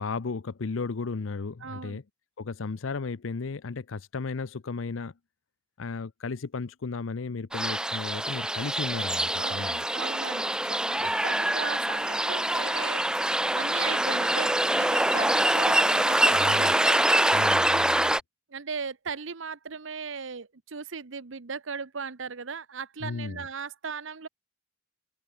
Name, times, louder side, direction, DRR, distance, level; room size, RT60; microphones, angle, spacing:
voice 1, 0.0-2.0 2.4-5.1 5.8-9.9 16.3-16.7 17.3-18.1 23.0-23.5, left 4 dB, 85° left, 0.6 m, -34 dB
voice 2, 1.6-2.0 9.4-13.1 13.5-17.3 17.8-18.0 18.5-24.3, right 5 dB, 75° right, 1.0 m, -37 dB
sound 1, 7.5-18.2, right 1 dB, 5° right, 0.4 m, -25 dB
head